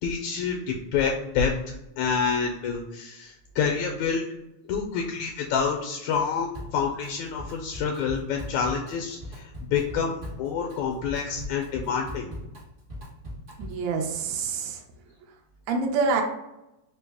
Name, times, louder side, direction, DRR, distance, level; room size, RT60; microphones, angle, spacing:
voice 1, 0.0-4.2 4.7-12.3, left 6 dB, 80° left, 2 dB, 1.8 m, -28 dB
Drum kit, 6.5-7.1 7.4-13.9, equal, 55° right, 0.8 m, -40 dB
voice 2, 13.6-14.8 15.7-16.2, right 4 dB, 80° right, 2 dB, 1.9 m, -26 dB
4.6 x 2.0 x 3.4 m, 0.92 s
omnidirectional pair, 3.4 m